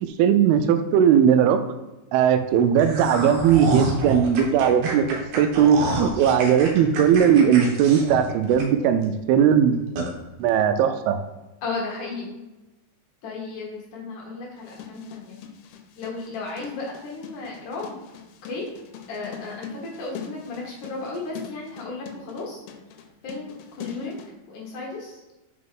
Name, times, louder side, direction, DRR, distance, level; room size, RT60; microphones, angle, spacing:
voice 1, 0.0-1.6 2.1-5.0 5.4-9.8 10.4-11.2, right 8 dB, 85° right, 9 dB, 2.3 m, -18 dB
sound 1, 2.8-9.0 9.4-9.5 10.0-10.1, right 2 dB, 65° right, 2.1 m, -29 dB
voice 2, 11.6-12.4 13.2-15.4 16.0-18.0 18.4-18.7 19.1-22.6 23.2-24.2 24.5-25.2, left 3 dB, 65° left, -3 dB, 2.3 m, -34 dB
sound 2, 14.6-24.3, left 8 dB, 85° left, 2.6 m, -42 dB
5.9 x 5.4 x 3.7 m, 1.1 s
omnidirectional pair, 4.6 m